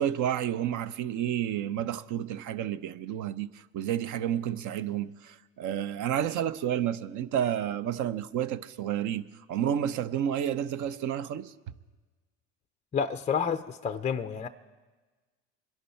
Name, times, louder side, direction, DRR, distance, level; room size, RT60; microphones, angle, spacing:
voice 1, 0.0-11.5, right 10 dB, 50° right, 0.7 m, -30 dB
voice 2, 12.9-14.5, left 6 dB, 20° left, 0.4 m, -29 dB
24.5 x 11.0 x 4.4 m
supercardioid pair, 95°, 38 cm